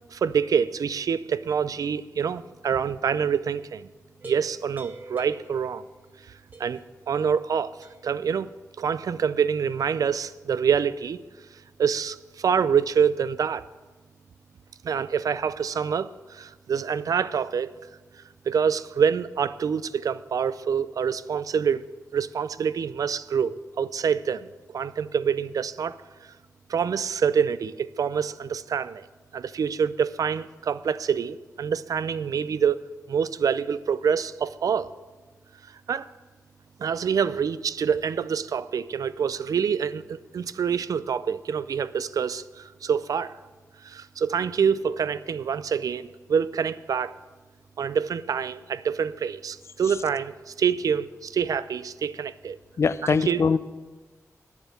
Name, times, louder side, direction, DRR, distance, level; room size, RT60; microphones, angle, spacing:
voice 1, 0.1-3.9 4.2-5.8 6.6-6.8 7.1-7.8 8.0-8.5 8.8-11.2 11.8-13.6 14.8-17.7 18.5-21.9 22.1-26.0 26.7-29.1 29.3-34.9 35.9-36.1 36.8-43.3 43.8-47.1 47.8-52.6 53.3-53.4, right 7 dB, 80° right, 15 dB, 0.4 m, -26 dB
sound 1, 4.2-6.2 6.5-7.0 7.8-8.2, right 2 dB, 30° right, 1.0 m, -45 dB
voice 2, 52.8-53.6, left 5 dB, 50° left, 15 dB, 0.4 m, -22 dB
10.0 x 7.1 x 7.8 m, 1.3 s
wide cardioid pair, 175°, 6 cm